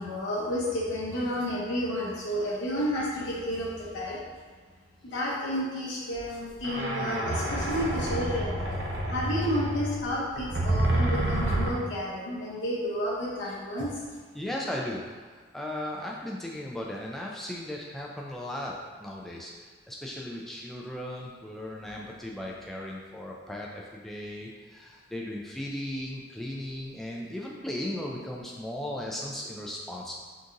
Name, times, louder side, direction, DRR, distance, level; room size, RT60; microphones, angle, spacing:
voice 1, 0.0-4.2 5.0-13.9, equal, 80° left, -7 dB, 0.7 m, -31 dB
sound 1, 6.1-6.2 6.6-11.7, right 1 dB, 65° right, 0.6 m, -28 dB
voice 2, 14.3-30.2, left 1 dB, ahead, -3 dB, 0.3 m, -37 dB
3.7 x 2.8 x 2.5 m, 1.5 s
head